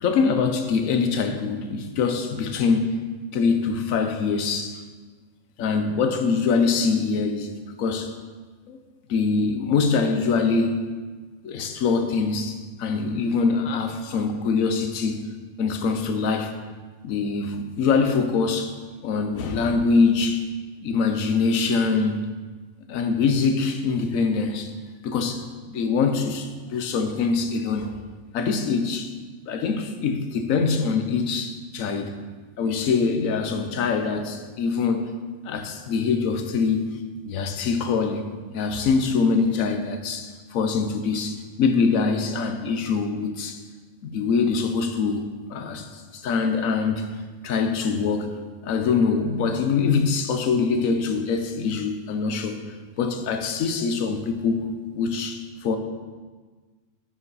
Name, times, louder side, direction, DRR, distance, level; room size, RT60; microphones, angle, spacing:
voice 1, 0.0-3.0 3.3-4.8 5.6-7.5 7.8-8.2 8.7-8.8 9.1-10.9 11.4-15.3 15.6-16.6 17.0-18.7 19.0-20.5 20.8-22.3 22.9-24.7 25.0-27.9 28.3-29.1 29.5-32.2 32.6-35.1 35.4-38.2 38.5-43.6 44.0-47.1 47.4-48.3 48.6-52.6 53.0-55.8, left 5 dB, 85° left, 7 dB, 1.2 m, -24 dB
9.3 x 5.8 x 4.0 m, 1.4 s
omnidirectional pair, 1.4 m